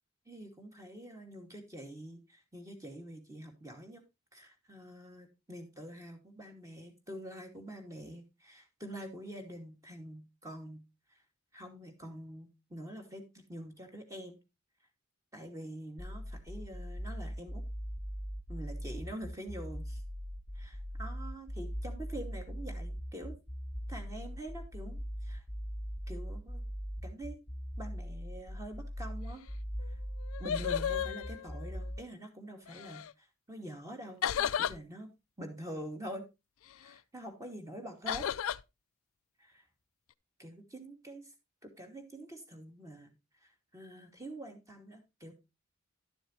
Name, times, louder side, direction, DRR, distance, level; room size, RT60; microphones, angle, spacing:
voice 1, 0.3-4.0 4.3-10.8 11.5-14.4 15.3-17.6 18.5-20.0 20.5-23.4 23.9-25.4 26.1-26.6 27.0-27.4 27.8-29.4 29.9-30.0 30.4-35.1 35.4-36.2 36.8-38.3 39.4-39.6 40.4-41.3 41.6-43.1 43.4-45.3, right 1 dB, 15° right, 3 dB, 2.4 m, -46 dB
sound 1, 16.0-32.0, equal, 5° left, 1.5 m, -40 dB
sound 2, 29.8-29.9 30.2-32.0 32.7-33.1 34.2-34.8 38.1-38.6, left 9 dB, 70° left, 0.4 m, -34 dB
12.0 x 7.1 x 3.1 m, 0.25 s
head